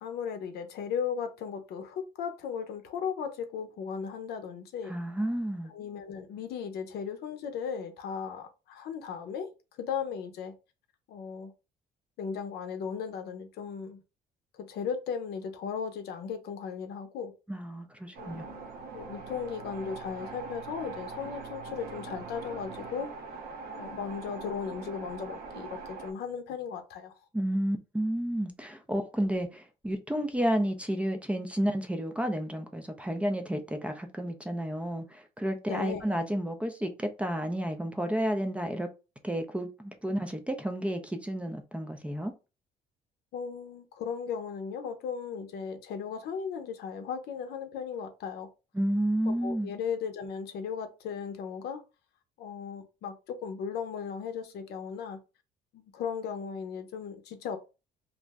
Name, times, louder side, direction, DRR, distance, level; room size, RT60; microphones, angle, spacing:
voice 1, 0.0-4.9 5.7-9.5 9.8-10.5 11.1-11.5 12.2-14.0 14.5-17.3 18.2-23.1 23.7-27.1 35.7-36.0 43.3-48.5 49.2-51.8 52.4-55.2 55.7-57.6, left 6 dB, 70° left, 0.6 m, -36 dB
voice 2, 4.9-5.7 17.5-18.5 27.3-38.9 39.2-42.3 48.7-49.7, equal, 5° right, 0.4 m, -31 dB
sound 1, 18.1-26.1, right 4 dB, 60° right, 0.6 m, -42 dB
2.5 x 2.0 x 3.4 m
cardioid pair, 110°, 17 cm